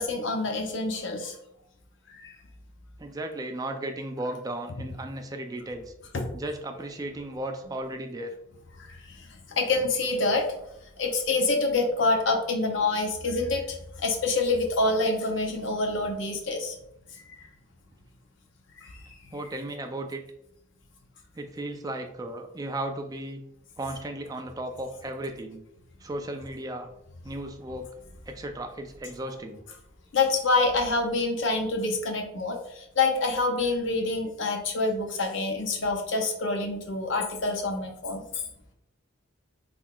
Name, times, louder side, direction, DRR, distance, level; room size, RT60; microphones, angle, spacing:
voice 1, 0.0-1.4 2.1-2.3 6.1-6.3 8.8-10.5 11.0-16.8 17.2-17.3 18.8-19.0 30.1-38.4, left 3 dB, 60° left, 3 dB, 0.6 m, -27 dB
voice 2, 3.0-5.9 6.3-8.3 19.3-20.2 21.4-23.4 23.8-25.6 26.0-26.9 27.2-27.9 28.3-29.6, right 1 dB, 20° right, 5 dB, 0.3 m, -35 dB
3.6 x 3.4 x 2.3 m, 0.81 s
head